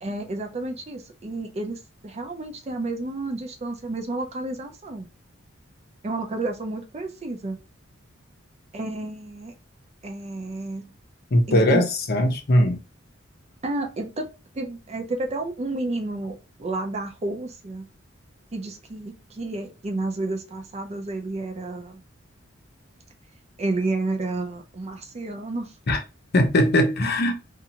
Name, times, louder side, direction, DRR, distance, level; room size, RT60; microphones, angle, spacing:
voice 1, 0.0-5.1 6.0-7.6 8.7-9.5 10.0-10.9 11.5-11.8 13.6-14.3 14.5-17.9 18.5-22.0 23.6-25.7, right 2 dB, 35° right, 0.5 m, -31 dB
voice 2, 11.3-12.8 25.9-26.0 26.3-27.3, left 1 dB, 55° left, 0.7 m, -20 dB
2.6 x 2.4 x 2.8 m
head